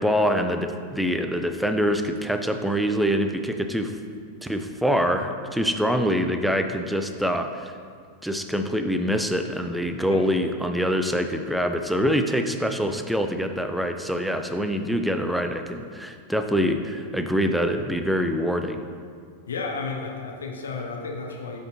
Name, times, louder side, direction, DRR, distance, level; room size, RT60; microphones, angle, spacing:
voice 1, 0.0-4.0 4.4-7.7 8.2-18.8, equal, ahead, 6 dB, 0.5 m, -25 dB
voice 2, 19.5-21.6, left 4 dB, 70° left, 1 dB, 0.8 m, -32 dB
8.4 x 5.5 x 3.0 m, 2.1 s
figure-of-eight pair, 90°, 0 cm